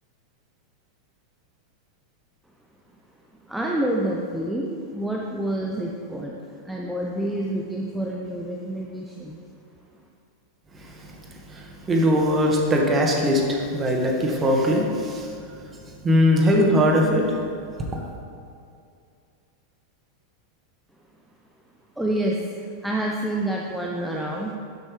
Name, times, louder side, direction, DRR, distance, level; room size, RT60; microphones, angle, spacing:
voice 1, 3.4-9.4 22.0-24.5, right 1 dB, 5° right, -2 dB, 0.8 m, -28 dB
voice 2, 11.5-15.3 16.0-17.2, equal, 20° right, 0 dB, 1.6 m, -20 dB
11.5 x 9.3 x 3.3 m, 2.4 s
figure-of-eight pair, 90°, 0 cm